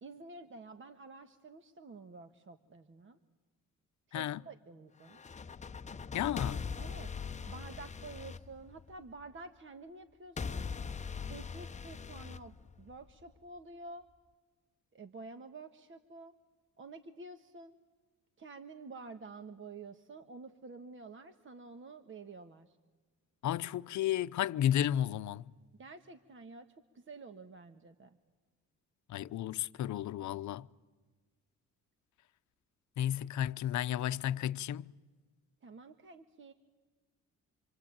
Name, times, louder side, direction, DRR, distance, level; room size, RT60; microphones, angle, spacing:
voice 1, 0.0-3.2 4.1-5.2 6.2-6.3 6.8-7.1 7.5-10.7 11.3-14.0 14.9-16.3 16.8-17.8 18.4-22.8 25.8-26.7 26.9-28.2 35.6-36.5, right 3 dB, 40° right, 1.5 m, -50 dB
sound 1, 5.1-9.2 10.4-13.2, left 5 dB, 25° left, 0.8 m, -41 dB
voice 2, 6.1-6.7 23.4-25.5 29.1-30.7 33.0-34.9, left 11 dB, 70° left, 0.8 m, -33 dB
27.0 x 24.0 x 8.8 m
cardioid pair, 90°, 30 cm